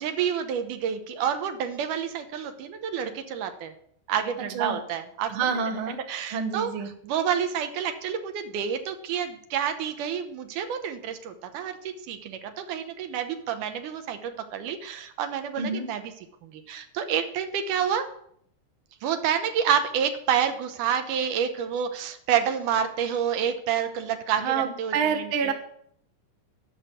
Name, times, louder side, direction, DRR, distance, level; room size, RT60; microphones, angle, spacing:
voice 1, 0.0-3.7 4.1-5.4 6.1-6.7 7.0-16.0 16.4-18.1 19.0-24.9, right 8 dB, 75° right, 7 dB, 2.5 m, -28 dB
voice 2, 5.3-6.0 6.3-6.9 15.6-15.9 24.4-25.5, right 6 dB, 55° right, 5 dB, 1.6 m, -27 dB
10.5 x 6.4 x 9.1 m, 0.67 s
omnidirectional pair, 3.7 m